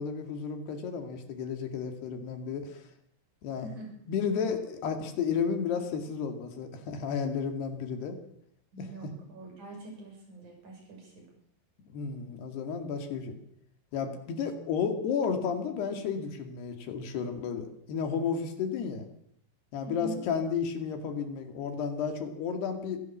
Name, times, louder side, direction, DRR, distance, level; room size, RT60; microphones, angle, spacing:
voice 1, 0.0-2.8 3.4-3.7 4.1-8.2 8.8-9.1 11.9-13.4 13.9-19.1 19.7-23.0, left 6 dB, 70° left, 6 dB, 4.2 m, -32 dB
voice 2, 3.5-3.9 8.7-11.3 19.8-20.2, right 3 dB, 45° right, 1 dB, 8.1 m, -44 dB
25.5 x 16.0 x 7.3 m, 0.72 s
omnidirectional pair, 4.9 m